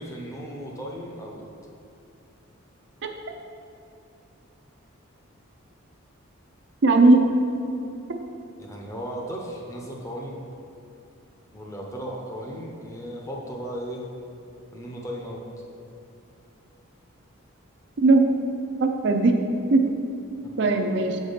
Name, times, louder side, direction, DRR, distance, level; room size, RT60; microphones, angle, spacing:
voice 1, 0.0-1.4 8.6-10.4 11.5-14.0 14.7-15.4, equal, 15° left, -1 dB, 0.7 m, -36 dB
voice 2, 6.8-7.3 8.1-8.2 18.0-18.3 18.8-19.4 19.7-19.9 20.6-21.2, right 3 dB, 55° right, 4 dB, 0.4 m, -18 dB
7.2 x 4.2 x 5.0 m, 2.8 s
head